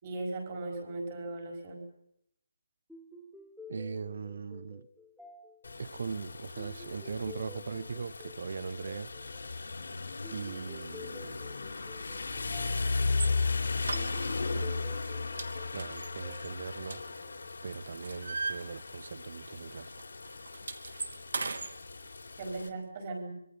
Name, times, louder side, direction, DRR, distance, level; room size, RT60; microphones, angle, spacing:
voice 1, 0.0-1.8 22.4-23.3, right 2 dB, 20° right, 5.0 m, -38 dB
sound 1, 2.9-17.7, left 3 dB, ahead, 1.0 m, -52 dB
voice 2, 3.7-4.9 5.8-9.1 10.3-11.4 14.5-15.0 15.7-17.0 17.6-19.9, right 5 dB, 40° right, 0.9 m, -40 dB
Rain, 5.6-22.7, left 3 dB, 70° left, 4.0 m, -36 dB
sound 2, 13.1-13.3 13.8-14.6 14.9-15.1 15.4-17.4 17.8-19.2 19.5-19.7 20.0-21.7, right 3 dB, 60° right, 2.9 m, -38 dB
25.5 x 23.0 x 5.6 m
hypercardioid pair, 180°, 0 cm